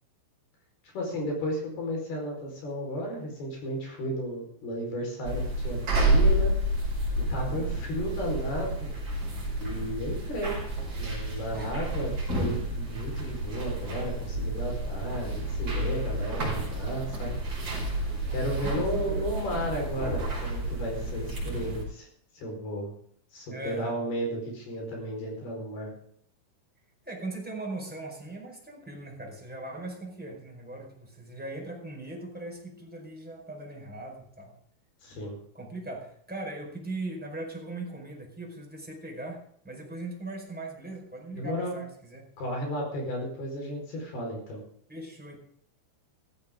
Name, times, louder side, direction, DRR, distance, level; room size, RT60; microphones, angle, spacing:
voice 1, 0.9-6.5 7.3-8.9 9.6-10.6 11.0-17.4 18.3-22.1 22.3-22.9 23.3-25.9 35.0-35.4 41.3-41.7 42.4-44.6, equal, 55° left, 1 dB, 6.4 m, -34 dB
sound 1, 5.2-21.8, right 1 dB, 30° right, 5.9 m, -30 dB
voice 2, 7.3-7.7 11.5-11.7 18.3-19.3 23.5-23.9 27.0-34.5 35.5-42.2 44.9-45.4, right 2 dB, ahead, -1 dB, 4.1 m, -39 dB
16.0 x 15.0 x 3.8 m, 0.62 s
omnidirectional pair, 5.7 m